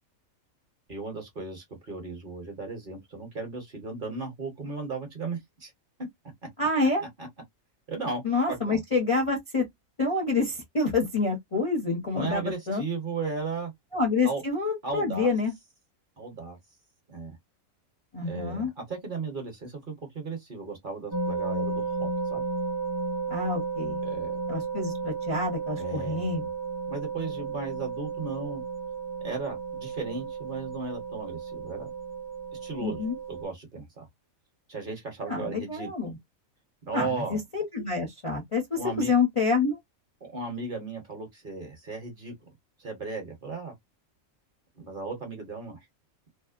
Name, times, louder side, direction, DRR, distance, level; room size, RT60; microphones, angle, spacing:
voice 1, 0.9-5.7 7.2-7.3 7.9-8.2 8.5-8.8 12.1-13.7 14.2-14.4 14.8-15.3 16.2-16.6 17.1-17.4 18.2-22.4 24.0-24.4 25.8-26.5 26.9-28.6 29.2-31.9 32.6-33.0 33.3-34.1 34.7-35.9 36.9-37.4 38.8-39.1 40.2-42.3 42.8-43.7 44.8-45.8, right 4 dB, 45° right, 0.9 m, -35 dB
voice 2, 6.6-7.0 8.2-9.7 10.0-12.8 13.9-15.5 18.1-18.7 23.3-24.0 24.5-26.4 32.8-33.2 35.3-36.2 36.9-39.8, left 3 dB, 30° left, 0.6 m, -27 dB
sound 1, 21.1-33.4, right 4 dB, 25° right, 0.3 m, -33 dB
2.7 x 2.0 x 2.4 m
omnidirectional pair, 1.4 m